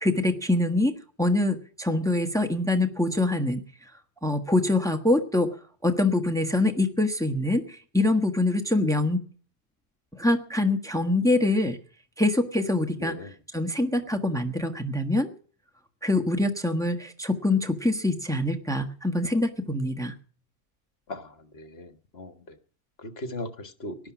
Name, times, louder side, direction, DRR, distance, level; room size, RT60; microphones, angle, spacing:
voice 1, 0.0-3.6 4.2-5.5 5.8-9.2 10.2-11.8 12.2-15.3 16.0-20.1, left 2 dB, 5° left, 7 dB, 1.3 m, -24 dB
voice 2, 13.0-13.3 21.1-21.3 21.5-22.3 23.2-24.0, left 1 dB, 55° left, 9 dB, 1.9 m, -37 dB
18.0 x 11.5 x 6.1 m, 0.42 s
omnidirectional pair, 1.3 m